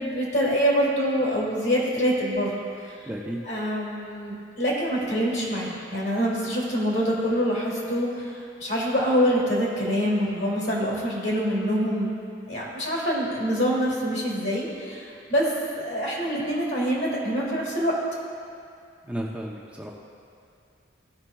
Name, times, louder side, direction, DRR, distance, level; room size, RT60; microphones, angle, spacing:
voice 1, 0.0-2.5 3.4-12.1 12.5-15.5 15.8-17.9, equal, 55° left, -5 dB, 2.0 m, -25 dB
voice 2, 3.1-3.4 19.1-19.9, right 1 dB, 5° right, -3 dB, 0.5 m, -33 dB
15.5 x 5.8 x 2.3 m, 2.5 s
head